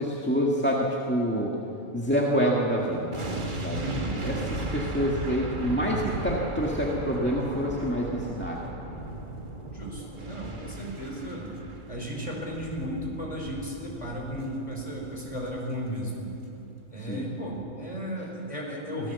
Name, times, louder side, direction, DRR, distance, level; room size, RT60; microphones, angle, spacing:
voice 1, 0.0-1.5 1.9-3.1 3.5-3.8 4.2-8.6 17.1-17.3, equal, 5° left, -3 dB, 1.8 m, -27 dB
sound 1, 3.1-16.3 16.5-16.7, right 2 dB, 35° right, 1.7 m, -36 dB
voice 2, 3.7-4.2 9.6-11.5 11.9-16.3 16.9-19.1, equal, 25° left, -2 dB, 5.0 m, -35 dB
25.0 x 17.5 x 7.1 m, 3.0 s
omnidirectional pair, 1.5 m